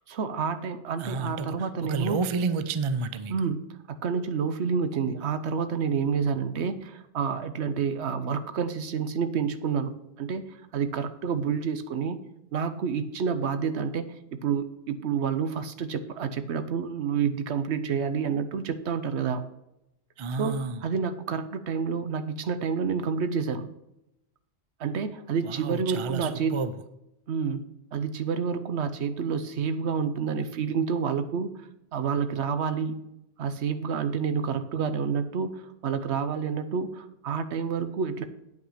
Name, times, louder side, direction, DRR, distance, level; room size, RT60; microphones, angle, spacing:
voice 1, 0.1-2.2 3.3-3.6 3.9-12.2 12.5-14.1 14.3-19.4 20.4-23.7 24.8-26.6 27.3-27.6 27.9-31.5 31.9-33.0 33.4-38.2, right 6 dB, 65° right, 11 dB, 1.0 m, -29 dB
voice 2, 1.0-3.3 20.2-20.9 25.4-26.7, right 4 dB, 45° right, 12 dB, 0.4 m, -30 dB
9.1 x 5.7 x 5.6 m, 0.87 s
omnidirectional pair, 1.3 m